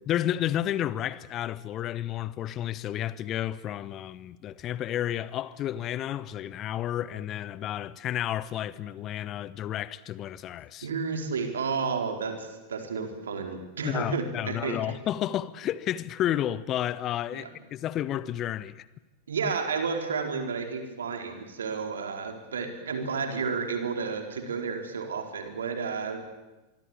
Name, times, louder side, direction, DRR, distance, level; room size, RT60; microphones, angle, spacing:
voice 1, 0.1-10.9 13.8-18.9, left 12 dB, 30° left, 1.0 m, -31 dB
voice 2, 10.8-14.8 17.3-17.5 19.3-26.3, right 5 dB, 65° right, 4.4 m, -31 dB
25.0 x 24.5 x 9.0 m
figure-of-eight pair, 90°, 0 cm